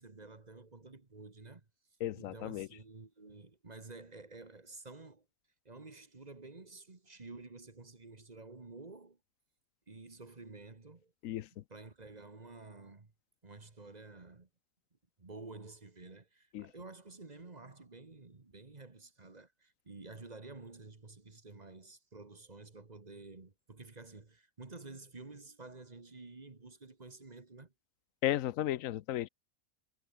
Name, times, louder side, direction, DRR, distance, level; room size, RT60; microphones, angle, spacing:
voice 1, 0.0-1.7 2.1-5.2 5.6-9.2 9.9-11.1 11.5-13.1 13.4-14.5 15.2-27.7, right 3 dB, 30° right, 1.7 m, -51 dB
voice 2, 2.0-2.7 11.2-11.5 16.5-16.7 28.2-29.3, left 13 dB, 85° left, 1.0 m, -34 dB
omnidirectional pair, 1.4 m